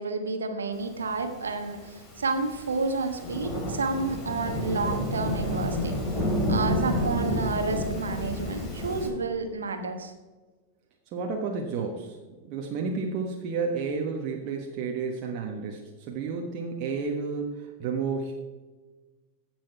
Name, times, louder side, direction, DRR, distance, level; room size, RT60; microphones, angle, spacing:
voice 1, 0.0-6.0 6.5-10.1, right 3 dB, 70° right, 6 dB, 1.4 m, -30 dB
Thunderstorm / Rain, 1.4-9.1, left 1 dB, 25° left, 3.2 m, -30 dB
voice 2, 11.1-12.2 12.4-18.3, right 4 dB, 40° right, 0 dB, 1.3 m, -31 dB
15.5 x 6.2 x 4.6 m, 1.3 s
figure-of-eight pair, 90°, 0 cm